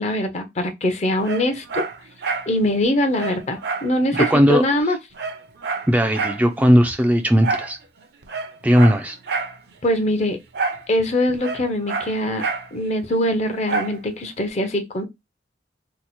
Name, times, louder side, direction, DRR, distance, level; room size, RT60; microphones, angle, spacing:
voice 1, 0.0-1.8 2.5-5.0 9.8-10.4 10.9-12.4 12.7-15.0, left 1 dB, 40° left, 0.6 m, -22 dB
Dog, 1.2-2.5 2.8-2.9 3.2-4.4 4.8-4.9 5.1-6.4 7.4-7.7 8.2-9.6 10.5-10.9 11.1-12.7 13.7-14.0 14.5-14.6, right 4 dB, 65° right, 0.5 m, -27 dB
voice 2, 4.1-4.6 5.9-7.8 8.6-9.2, equal, 10° right, 0.3 m, -17 dB
2.9 x 2.0 x 4.1 m
head